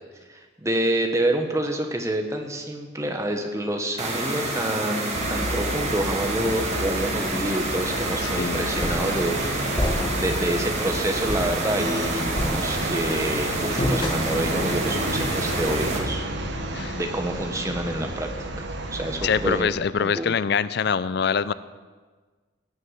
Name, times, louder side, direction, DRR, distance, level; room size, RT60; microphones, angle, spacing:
voice 1, 0.3-9.8 10.1-16.2 17.0-18.3 18.6-18.7 18.9-19.7 20.0-20.3, right 1 dB, 15° right, 4 dB, 1.2 m, -27 dB
sound 1, 4.0-16.0, right 2 dB, 35° right, 2.0 m, -29 dB
sound 2, 5.1-19.6, right 1 dB, 60° right, 1.3 m, -31 dB
voice 2, 8.2-8.6 16.7-17.0 19.2-21.5, left 6 dB, 55° left, 16 dB, 0.4 m, -24 dB
sound 3, 8.8-9.2 9.8-10.4 10.8-10.9 11.3-11.6 12.4-13.0 13.8-14.5, equal, 25° left, 1.2 m, -28 dB
17.5 x 6.5 x 7.4 m, 1.4 s
head